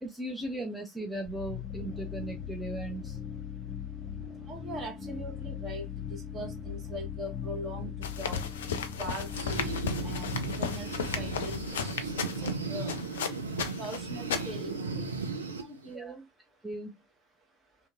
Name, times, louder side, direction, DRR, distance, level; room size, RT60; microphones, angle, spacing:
voice 1, 0.0-3.2 15.9-16.2 16.6-17.0, right 1 dB, 5° right, 0.6 m, -37 dB
sound 1, 1.2-13.0, left 8 dB, 30° left, 0.8 m, -39 dB
voice 2, 4.5-8.4 9.0-9.8 10.0-11.6 11.9-12.0 12.4-12.9 13.8-15.0 15.6-16.2, right 1 dB, 35° right, 1.2 m, -41 dB
sound 2, 8.0-14.8, left 6 dB, 70° left, 0.4 m, -35 dB
sound 3, 9.3-15.9, right 4 dB, 80° right, 0.5 m, -36 dB
2.8 x 2.7 x 2.2 m
figure-of-eight pair, 65°, 0 cm